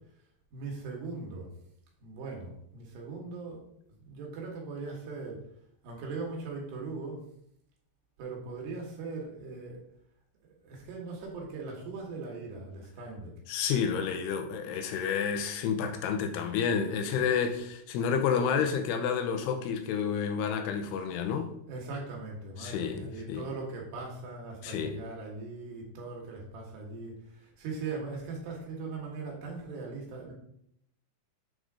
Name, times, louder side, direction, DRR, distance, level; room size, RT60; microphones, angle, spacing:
voice 1, 0.5-1.5 2.0-3.6 4.0-5.4 5.8-7.2 8.2-9.8 10.4-13.4 17.2-17.3 21.7-30.3, right 3 dB, 80° right, 3.8 m, -40 dB
voice 2, 13.5-21.5 22.6-23.5 24.6-25.0, left 7 dB, 85° left, 2.7 m, -30 dB
8.1 x 3.9 x 4.8 m
omnidirectional pair, 4.7 m